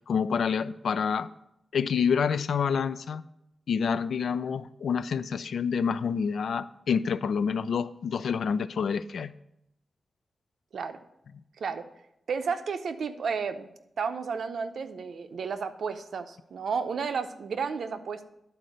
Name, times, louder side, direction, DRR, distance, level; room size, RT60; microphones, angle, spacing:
voice 1, 0.1-1.3 1.7-3.2 3.7-9.3, left 6 dB, 90° left, 14 dB, 0.4 m, -28 dB
voice 2, 12.3-13.7 14.0-18.3, right 5 dB, 80° right, 8 dB, 0.7 m, -32 dB
11.0 x 4.3 x 6.4 m, 0.81 s
wide cardioid pair, 125°, 0 cm